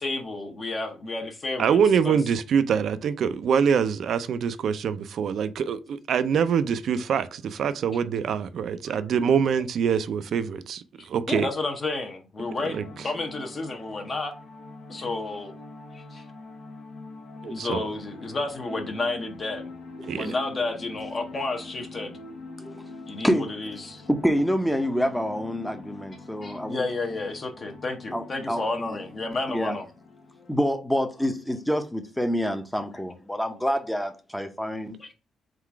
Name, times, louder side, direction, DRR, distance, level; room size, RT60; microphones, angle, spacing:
voice 1, 0.0-1.8 2.0-2.2 11.0-14.4 14.9-15.5 15.9-16.2 17.4-19.7 20.1-22.1 23.1-23.3 23.6-24.0 26.4-29.9 35.0-35.1, left 3 dB, 40° left, 0.8 m, -31 dB
voice 2, 1.6-11.5 12.7-12.8 17.4-17.8 20.1-20.3, right 7 dB, 65° right, 0.4 m, -24 dB
sound 1, 12.4-30.6, left 3 dB, 65° left, 0.8 m, -43 dB
voice 3, 20.0-20.3 22.6-22.9 23.2-23.5 24.1-26.8 28.1-28.6 28.9-29.0 29.5-29.8 30.5-35.0, equal, 5° left, 0.6 m, -27 dB
3.8 x 2.4 x 4.5 m
cardioid pair, 90°, 0 cm